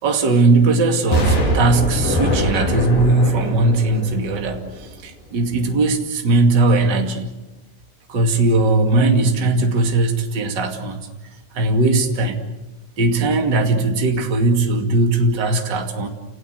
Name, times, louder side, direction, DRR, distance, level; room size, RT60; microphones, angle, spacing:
voice 1, 0.0-7.3 8.1-11.0 11.5-12.4 13.0-16.1, right 2 dB, 30° right, 4 dB, 2.2 m, -18 dB
Explosion, 1.1-5.0 5.5-5.6, equal, 50° left, 6.5 m, -22 dB
29.0 x 19.0 x 8.1 m, 1.1 s
omnidirectional pair, 5.1 m